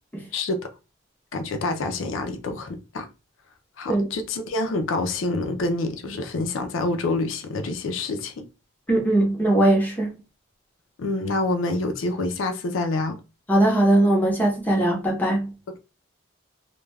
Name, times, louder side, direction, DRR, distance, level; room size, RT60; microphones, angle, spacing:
voice 1, 1.3-3.1 3.8-8.4 11.0-13.2, left 2 dB, 85° left, 0.4 m, -27 dB
voice 2, 8.9-10.2 13.5-15.5, right 1 dB, 10° left, 0.7 m, -20 dB
2.2 x 2.2 x 3.2 m
head